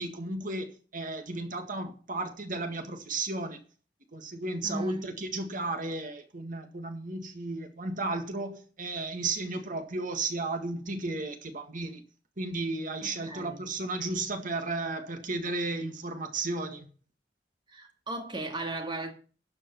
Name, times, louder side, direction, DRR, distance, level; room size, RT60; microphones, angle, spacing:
voice 1, 0.0-3.6 4.1-12.0 12.4-16.9, right 2 dB, 50° right, 1.9 m, -34 dB
voice 2, 4.6-5.0 13.2-13.6 17.7-19.1, right 2 dB, 25° right, 2.1 m, -36 dB
12.0 x 5.3 x 7.0 m
head